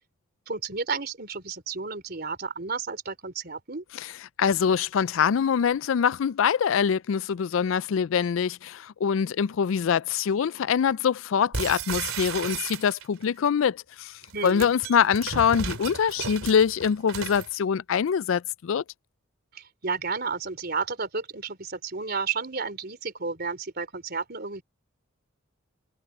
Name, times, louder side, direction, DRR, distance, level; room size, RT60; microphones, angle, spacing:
voice 1, 0.5-3.8 14.3-14.7 19.5-24.6, right 4 dB, 50° right, 3.6 m, -32 dB
voice 2, 4.4-14.1 14.4-18.8, left 7 dB, 70° left, 0.4 m, -24 dB
sound 1, 11.5-13.2 14.2-17.5, right 5 dB, 80° right, 3.0 m, -34 dB
head